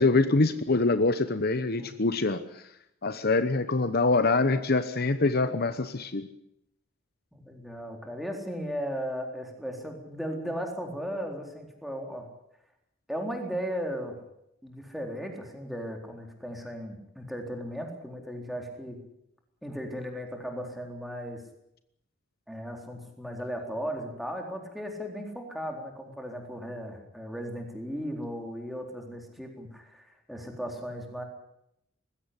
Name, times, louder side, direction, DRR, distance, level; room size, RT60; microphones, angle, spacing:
voice 1, 0.0-2.6 3.0-6.3, left 3 dB, 55° left, 11 dB, 1.0 m, -25 dB
voice 2, 7.3-12.3 13.1-14.2 14.6-19.0 19.6-21.4 22.5-31.2, equal, ahead, 2 dB, 4.0 m, -36 dB
20.5 x 15.5 x 9.8 m, 0.79 s
head